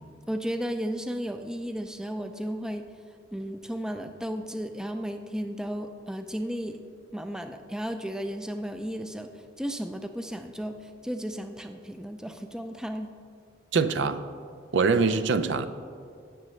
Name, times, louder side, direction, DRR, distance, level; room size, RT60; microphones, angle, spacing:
voice 1, 0.3-2.9 3.3-6.8 7.1-13.1, equal, 5° right, 6 dB, 0.4 m, -34 dB
voice 2, 13.7-14.2 14.7-15.7, right 4 dB, 75° right, 12 dB, 0.5 m, -23 dB
17.0 x 6.7 x 3.2 m, 2.2 s
head